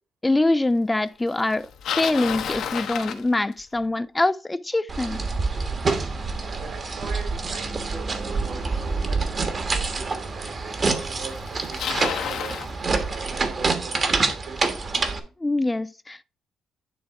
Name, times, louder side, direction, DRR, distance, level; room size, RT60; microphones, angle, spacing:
voice 1, 0.2-1.7 1.9-5.2 15.4-16.2, left 2 dB, 15° left, 0.3 m, -24 dB
Bicycle, 1.5-3.8 8.9-9.0 9.8-9.9 11.0-11.1 11.3-12.7, left 8 dB, 75° left, 1.1 m, -30 dB
sound 1, 4.9-15.2, right 4 dB, 40° right, 1.3 m, -27 dB
voice 2, 6.4-12.6 13.1-14.8, right 4 dB, 70° right, 3.6 m, -41 dB
10.0 x 3.5 x 4.6 m
cardioid pair, 90°, 0 cm